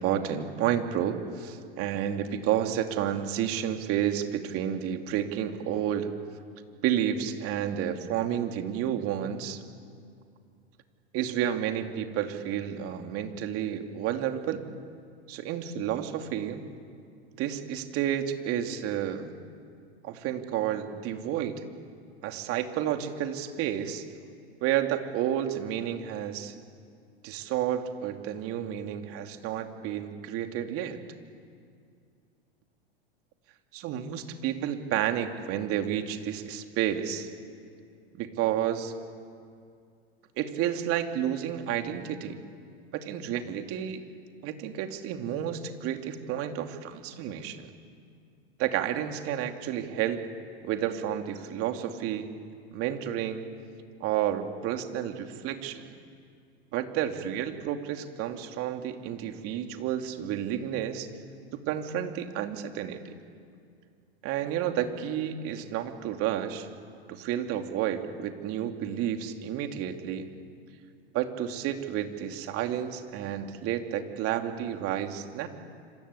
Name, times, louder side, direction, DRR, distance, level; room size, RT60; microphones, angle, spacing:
voice 1, 0.0-6.2 6.8-9.6 11.1-14.6 15.3-16.6 17.4-19.3 20.0-21.7 22.2-24.0 24.6-26.6 27.2-31.0 33.7-37.3 38.2-38.9 40.4-42.4 42.9-44.0 44.4-47.7 48.6-50.2 50.6-52.3 52.7-53.4 54.0-55.9 56.7-61.1 61.5-63.0 64.2-66.7 67.1-70.3 71.1-75.5, right 10 dB, 45° right, 6 dB, 2.9 m, -31 dB
26.5 x 26.5 x 8.4 m, 2.3 s
hypercardioid pair, 100°, 32 cm